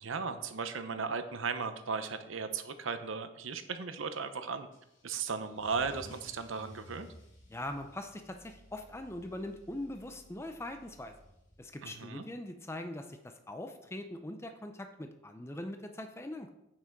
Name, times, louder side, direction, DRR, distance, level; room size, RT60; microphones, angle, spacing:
voice 1, 0.0-4.7 5.0-7.1 11.8-12.2, right 5 dB, 85° right, 9 dB, 0.8 m, -36 dB
Car / Engine starting / Accelerating revving vroom, 4.7-11.9, equal, 75° left, 2.9 m, -56 dB
voice 2, 7.5-11.1 11.6-16.5, left 1 dB, 15° left, 6 dB, 0.5 m, -42 dB
8.7 x 5.9 x 4.6 m, 0.85 s
head